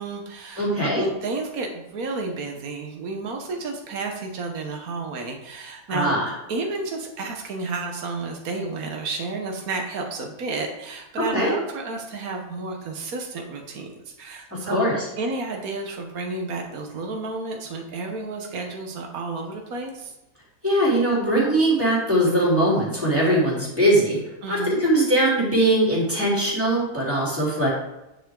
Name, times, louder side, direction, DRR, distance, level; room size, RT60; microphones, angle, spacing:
voice 1, 0.0-6.2 6.5-14.9 15.2-20.1 24.4-24.8, right 3 dB, 75° right, 2 dB, 1.6 m, -31 dB
voice 2, 0.6-1.0 5.9-6.3 11.3-11.5 14.6-14.9 20.6-24.2 24.5-27.7, right 1 dB, 10° right, -6 dB, 3.8 m, -21 dB
9.8 x 7.8 x 3.8 m, 0.95 s
omnidirectional pair, 1.5 m